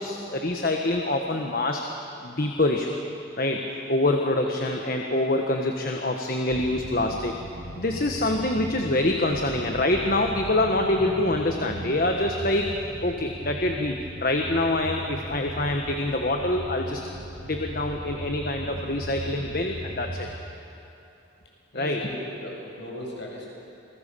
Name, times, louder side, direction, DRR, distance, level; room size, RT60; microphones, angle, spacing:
voice 1, 0.0-1.8 2.2-2.9 3.4-3.6 3.9-7.3 7.8-12.7 13.0-17.0 17.4-20.3 21.7-22.0, left 1 dB, 45° left, 2 dB, 1.4 m, -25 dB
voice 2, 4.4-4.7 21.7-23.5, equal, 60° left, -2 dB, 6.9 m, -38 dB
sound 1, 6.5-20.4, right 1 dB, 65° right, 2.4 m, -38 dB
28.5 x 21.5 x 7.0 m, 2.8 s
head